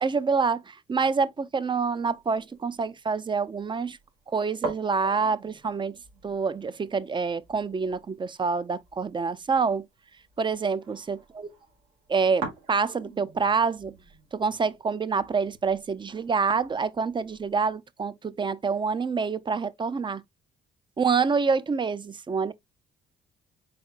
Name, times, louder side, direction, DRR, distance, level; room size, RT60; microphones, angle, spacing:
voice 1, 0.0-4.0 4.3-6.0 6.2-9.9 10.4-11.5 12.1-13.9 14.3-20.2 21.0-22.5, right 5 dB, 25° right, 0.5 m, -27 dB
sound 1, 1.9-17.8, right 3 dB, 90° right, 1.6 m, -44 dB
4.2 x 4.2 x 2.4 m
supercardioid pair, 60°, 19 cm